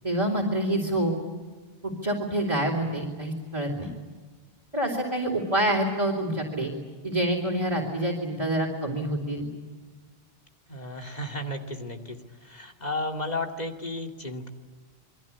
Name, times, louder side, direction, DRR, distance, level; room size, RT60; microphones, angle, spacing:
voice 1, 0.0-1.1 1.8-3.9 4.7-6.7 7.0-9.5, right 1 dB, 30° right, -2 dB, 3.6 m, -27 dB
voice 2, 10.7-12.2 12.4-14.5, left 2 dB, 45° left, 3 dB, 2.5 m, -33 dB
28.0 x 23.0 x 8.6 m, 1.4 s
omnidirectional pair, 1.0 m